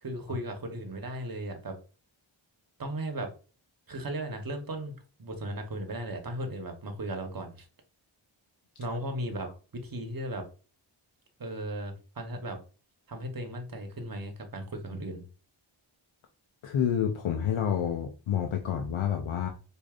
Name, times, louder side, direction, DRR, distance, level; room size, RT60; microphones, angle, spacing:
voice 1, 0.0-1.8 2.8-3.3 3.9-7.7 8.8-10.5 11.4-12.6 13.1-15.2, right 1 dB, 45° right, 5 dB, 1.0 m, -36 dB
voice 2, 16.6-19.5, left 9 dB, 85° left, 4 dB, 0.6 m, -29 dB
4.7 x 2.5 x 2.4 m, 0.36 s
cardioid pair, 40°, 48 cm